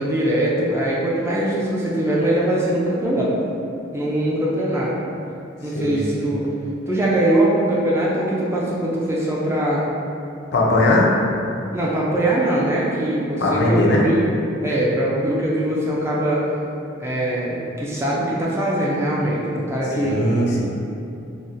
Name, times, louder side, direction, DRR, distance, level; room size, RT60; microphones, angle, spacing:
voice 1, 0.0-3.3 3.9-4.9 5.6-6.5 6.9-9.9 11.7-14.3 14.6-16.5 17.0-20.2, right 1 dB, 15° right, -6 dB, 0.3 m, -22 dB
voice 2, 5.7-6.3 10.5-11.1 13.4-14.0 20.0-20.7, left 1 dB, 55° left, -3 dB, 0.4 m, -19 dB
3.8 x 2.0 x 2.5 m, 2.6 s
head